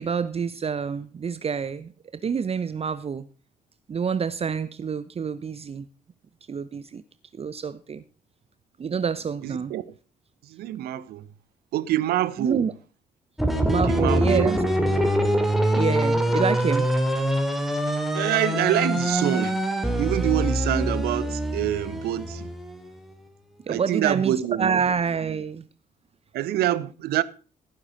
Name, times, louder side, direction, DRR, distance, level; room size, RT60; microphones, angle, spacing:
voice 1, 0.0-1.9 2.2-3.3 3.9-5.9 6.5-7.0 7.3-8.0 8.8-9.7 12.4-12.7 13.6-15.1 15.7-16.9 23.7-25.6, right 6 dB, 30° right, 0.8 m, -27 dB
voice 2, 9.4-9.8 10.4-11.3 11.7-12.7 13.7-14.5 18.1-22.5 23.7-24.8 26.3-27.2, right 13 dB, 55° right, 0.9 m, -26 dB
sound 1, 13.4-23.0, equal, ahead, 3.0 m, -24 dB
16.5 x 9.8 x 4.0 m
figure-of-eight pair, 45°, 19 cm